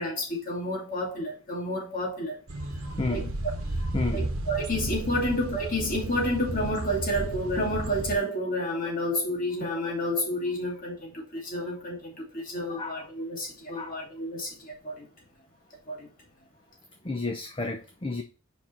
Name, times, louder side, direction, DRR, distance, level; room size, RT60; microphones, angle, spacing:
voice 1, 0.0-2.4 3.1-3.2 4.1-15.1 15.9-16.1, equal, 40° left, 2.5 m, -30 dB
sound 1, 2.5-8.2, right 1 dB, 75° right, 1.0 m, -33 dB
voice 2, 2.7-3.3 3.9-4.3 12.8-13.1 13.7-14.0 17.0-18.2, left 3 dB, 25° left, 0.6 m, -32 dB
5.4 x 4.7 x 4.4 m
head